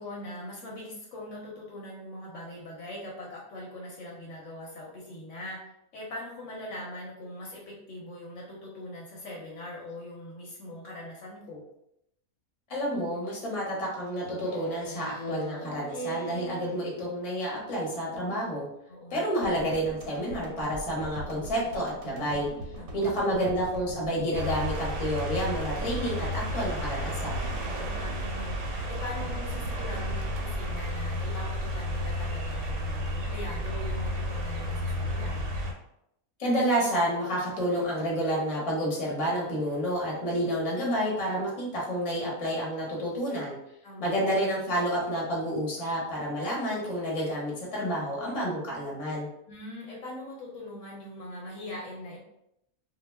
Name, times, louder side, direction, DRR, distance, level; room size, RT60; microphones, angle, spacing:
voice 1, 0.0-5.6 5.9-11.6 18.9-19.3 22.8-23.2 27.7-35.5 43.8-44.1 49.5-52.2, left 1 dB, 65° left, -3 dB, 0.9 m, -41 dB
voice 2, 12.7-18.7 19.1-22.5 22.9-27.5 36.4-43.6 44.0-49.3, equal, 30° left, -4 dB, 0.7 m, -29 dB
Speech synthesizer, 14.2-17.3, right 3 dB, 85° left, 1.0 m, -39 dB
sound 1, 19.4-31.6 31.9-32.1, right 1 dB, 85° right, 1.1 m, -42 dB
sound 2, 24.3-35.7, equal, 65° right, 0.8 m, -32 dB
2.2 x 2.2 x 3.2 m, 0.79 s
omnidirectional pair, 1.5 m